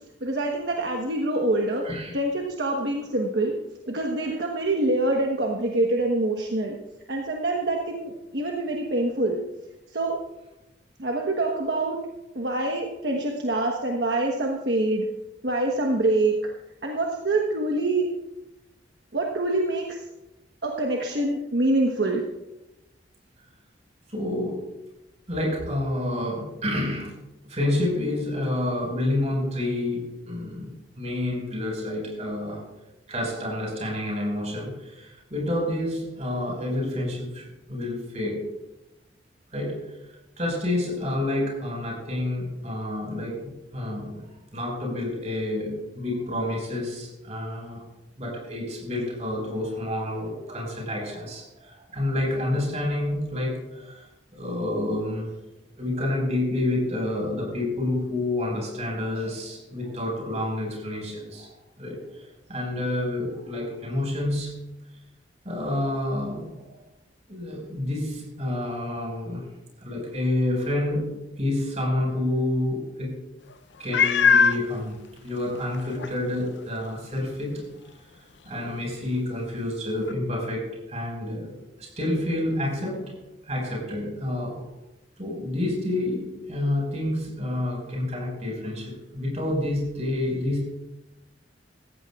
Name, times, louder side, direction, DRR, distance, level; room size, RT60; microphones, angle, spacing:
voice 1, 0.2-1.8 2.1-3.5 3.9-6.8 7.1-9.4 9.9-10.2 11.0-12.0 12.3-15.1 15.4-16.4 16.8-18.1 19.1-20.0 20.6-22.2, right 2 dB, 65° right, 0 dB, 1.3 m, -25 dB
voice 2, 24.1-24.6 25.3-27.1 27.5-32.7 33.1-38.5 39.5-39.9 40.4-44.2 44.5-47.8 48.2-54.1 54.3-55.3 55.8-62.0 62.5-64.6 65.4-66.6 67.3-69.4 69.8-73.2 73.8-75.0 75.2-77.6 78.5-81.5 81.8-83.0 83.5-84.7 85.2-90.7, left 1 dB, 40° right, -1 dB, 5.5 m, -29 dB
Meow, 73.9-74.6 75.4-75.5 76.0-76.1 80.1-80.2, left 6 dB, 75° left, 0.6 m, -19 dB
16.5 x 15.0 x 2.5 m, 0.99 s
head